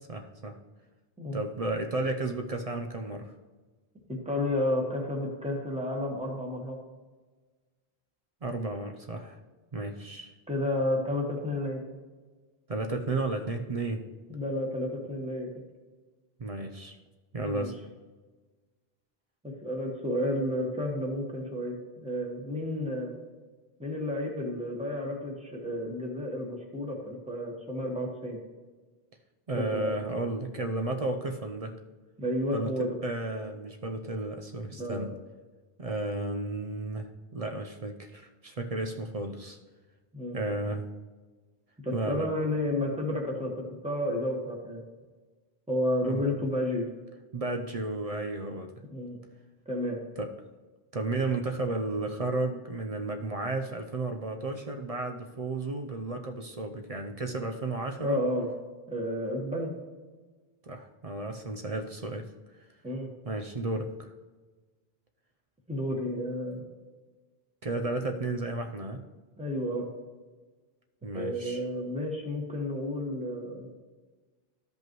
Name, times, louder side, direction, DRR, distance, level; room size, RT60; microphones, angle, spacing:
voice 1, 0.1-0.5 1.3-3.3 8.4-9.4 9.7-10.3 12.7-14.1 16.4-17.0 17.3-17.7 29.5-31.7 32.5-35.1 35.8-37.1 37.3-39.6 40.3-40.9 41.9-42.3 46.0-46.3 47.3-48.7 50.2-50.3 50.9-58.2 60.6-62.3 63.2-64.1 67.6-69.0 71.0-71.6, right 2 dB, 40° right, 4 dB, 0.6 m, -33 dB
voice 2, 4.2-6.8 10.5-11.8 14.3-15.5 17.4-17.7 19.4-23.1 23.8-28.4 29.5-30.0 32.2-32.9 34.8-35.1 40.1-40.4 41.8-43.5 43.8-44.8 45.7-46.8 48.9-49.2 49.6-50.0 58.0-58.5 58.9-59.7 62.8-63.1 65.7-66.6 69.4-69.9 71.1-73.7, left 1 dB, 5° right, -1 dB, 1.4 m, -31 dB
14.0 x 5.3 x 3.1 m, 1.3 s
omnidirectional pair, 1.0 m